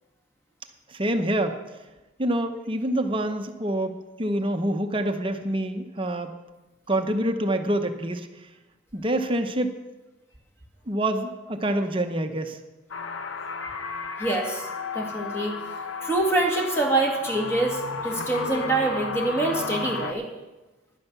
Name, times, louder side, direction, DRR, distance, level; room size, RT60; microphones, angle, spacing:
voice 1, 0.9-1.6 2.2-6.3 6.9-8.3 8.9-9.8 10.9-12.6, right 1 dB, 25° right, 6 dB, 0.8 m, -26 dB
sound 1, 12.9-20.1, left 4 dB, 80° left, 0.9 m, -33 dB
voice 2, 14.2-14.7 14.9-15.6 16.0-20.3, right 2 dB, 10° left, 0 dB, 2.0 m, -25 dB
11.0 x 10.5 x 6.8 m, 1.1 s
head